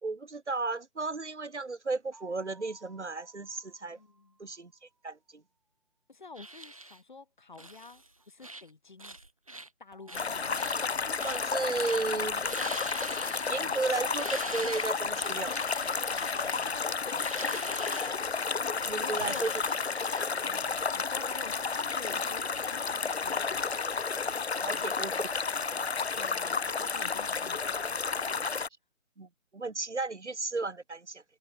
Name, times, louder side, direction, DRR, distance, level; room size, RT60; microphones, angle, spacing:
voice 1, 0.0-4.0 4.4-4.7 5.0-5.4 10.5-10.9 11.2-12.5 13.5-15.6 17.8-18.0 18.8-19.5 24.6-25.3 29.2-31.2, right 3 dB, 60° right, 5.3 m, -34 dB
sound 1, 2.1-5.1 9.9-12.1 16.0-16.5, right 3 dB, ahead, 3.5 m, -60 dB
voice 2, 3.9-4.4 6.1-9.2 9.8-10.7 13.6-13.8 16.5-17.8 18.9-19.5 20.4-23.7 24.6-25.2 26.2-27.9, left 4 dB, 35° left, 4.3 m, -50 dB
sound 2, 6.3-7.0 7.5-8.1 8.4-8.7 9.0-9.7 10.1-10.8 11.2-11.5 11.8-12.1 12.4-13.8 14.1-18.1 19.2-20.2, right 2 dB, 25° right, 1.3 m, -44 dB
sound 3, 10.1-28.7, left 5 dB, 55° left, 0.6 m, -32 dB
figure-of-eight pair, 180°, 39 cm